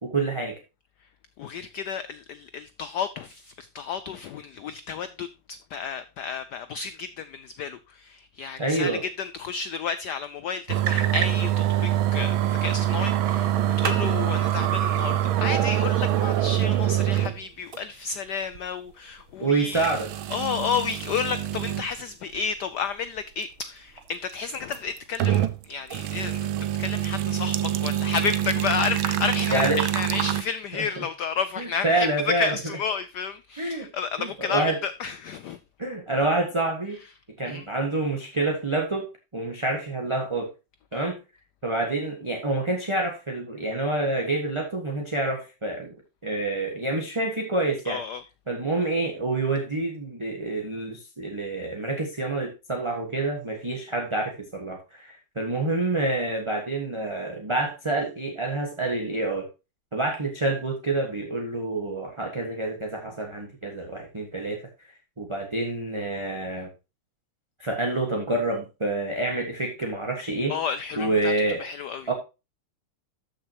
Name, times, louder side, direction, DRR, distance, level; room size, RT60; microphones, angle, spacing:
voice 1, 0.0-0.5 8.6-9.0 19.4-20.1 29.5-29.8 30.8-31.0 31.6-32.5 33.6-33.9 34.2-34.8 35.8-37.0 37.4-39.1 39.3-40.5 40.9-41.2 41.6-45.9 46.2-48.0 48.5-59.5 59.9-64.6 65.2-66.7 67.6-70.6 71.0-71.7 72.1-72.2, right 2 dB, 15° right, 1.2 m, -27 dB
voice 2, 1.4-19.9 20.3-26.4 26.8-35.6 37.4-37.7 40.9-41.1 47.8-48.2 70.5-71.3 71.6-72.1, left 6 dB, 85° left, 0.9 m, -31 dB
sound 1, 10.7-17.4 17.7-17.8 18.5-18.6 19.7-21.9 22.3-22.4 24.5-25.6 25.9-30.4, right 12 dB, 70° right, 1.5 m, -25 dB
13.5 x 6.4 x 2.9 m
omnidirectional pair, 2.4 m